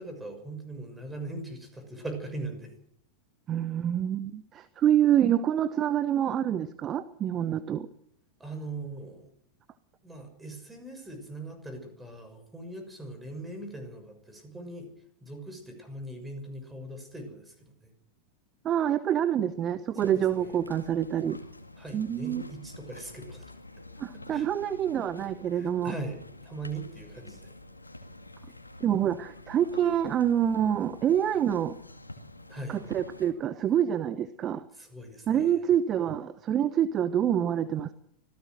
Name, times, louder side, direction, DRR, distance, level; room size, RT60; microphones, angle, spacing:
voice 1, 0.0-2.7 8.4-9.3 10.0-14.9 15.2-17.9 19.9-20.6 21.8-23.5 24.1-24.5 25.5-27.5 32.5-32.9 34.7-35.6, right 2 dB, 10° right, 6 dB, 6.4 m, -40 dB
voice 2, 3.5-7.9 18.6-21.4 21.9-22.4 24.0-25.9 28.8-31.7 32.7-34.6 35.3-37.9, right 10 dB, 30° right, 14 dB, 0.9 m, -26 dB
sound 1, 20.0-33.3, left 2 dB, 85° left, 2.0 m, -48 dB
25.5 x 17.0 x 6.4 m, 0.68 s
figure-of-eight pair, 90°, 0 cm